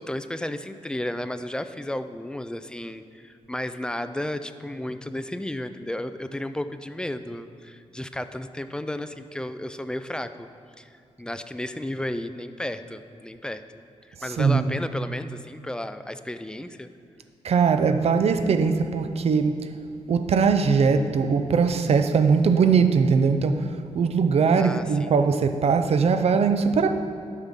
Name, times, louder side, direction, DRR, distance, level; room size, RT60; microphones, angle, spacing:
voice 1, 0.0-10.5 10.8-13.6 14.0-16.9 24.6-25.1, left 1 dB, 5° left, 10 dB, 0.3 m, -33 dB
voice 2, 14.4-14.7 17.4-19.6 20.1-26.9, right 5 dB, 60° right, 8 dB, 0.5 m, -21 dB
12.5 x 5.6 x 3.6 m, 2.4 s
cardioid pair, 100°, 12 cm